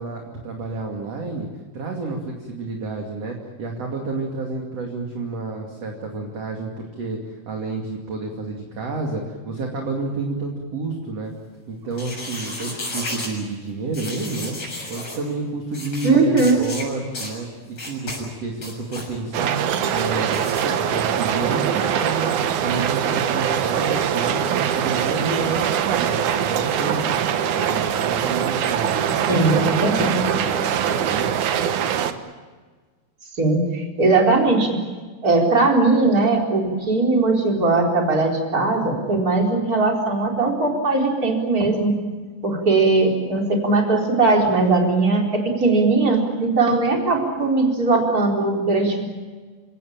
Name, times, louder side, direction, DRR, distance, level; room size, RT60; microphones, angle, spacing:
voice 1, 0.0-1.5 1.7-11.3 11.7-14.6 14.9-17.5 17.8-19.6 19.9-24.4 24.7-27.2 27.5-31.3, right 3 dB, 45° right, 1 dB, 3.3 m, -30 dB
sound 1, 11.9-13.3 13.9-15.2 15.7-16.1 16.4-16.8 17.1-17.3 17.8-18.2 18.5-19.1 20.3-20.6, left 2 dB, 35° left, 8.0 m, -33 dB
voice 2, 16.0-16.6 29.3-30.2 33.4-34.7 35.2-41.9 42.4-49.0, right 3 dB, 20° right, 0 dB, 4.4 m, -19 dB
sound 2, 19.3-32.1, right 9 dB, 65° right, 2.2 m, -22 dB
29.0 x 17.5 x 8.9 m, 1.4 s
omnidirectional pair, 4.6 m